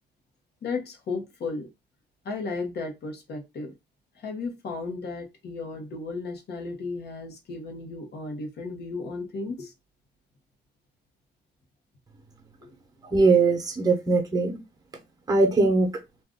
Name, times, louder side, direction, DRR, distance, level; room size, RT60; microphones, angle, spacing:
voice 1, 0.6-1.7 2.2-3.7 4.2-9.7, left 3 dB, 65° left, 1.1 m, -34 dB
voice 2, 13.1-14.6 15.3-15.9, right 3 dB, 20° right, 1.0 m, -21 dB
2.5 x 2.5 x 3.6 m
cardioid pair, 115°, 19 cm